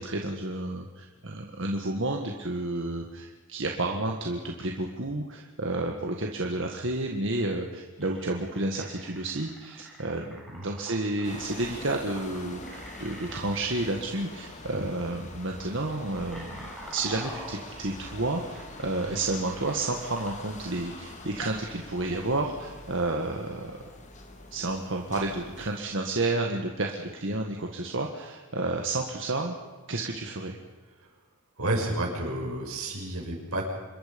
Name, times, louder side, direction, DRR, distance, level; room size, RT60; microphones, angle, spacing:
voice 1, 0.0-23.8 24.5-29.5 29.9-30.6, right 2 dB, 60° right, 1 dB, 1.7 m, -31 dB
sound 1, 8.0-13.4 14.4-14.6 14.9-15.2 15.7-20.5, right 1 dB, ahead, 6.8 m, -46 dB
sound 2, 11.2-25.8, left 2 dB, 35° left, 2.3 m, -45 dB
voice 2, 31.6-33.7, right 1 dB, 85° right, 0 dB, 6.0 m, -31 dB
26.5 x 22.0 x 5.3 m, 1.3 s
head